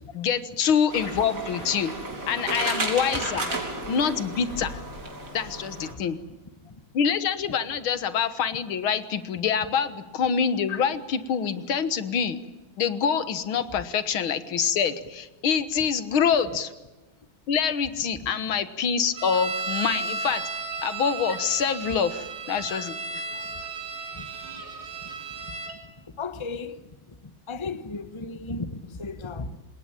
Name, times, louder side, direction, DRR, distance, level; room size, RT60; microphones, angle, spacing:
voice 1, 0.1-1.9 2.3-3.6 3.9-4.8 5.3-6.2 6.9-12.4 12.8-16.7 17.5-20.4 20.8-23.2, left 7 dB, 85° left, 2.2 m, -26 dB
sound 1, 0.9-5.9, right 2 dB, 55° right, 4.9 m, -33 dB
sound 2, 19.2-25.8, right 4 dB, 85° right, 3.9 m, -34 dB
voice 2, 26.2-26.8 27.1-27.2 27.5-29.6, left 3 dB, 20° left, 1.0 m, -35 dB
27.0 x 21.0 x 9.0 m
omnidirectional pair, 2.2 m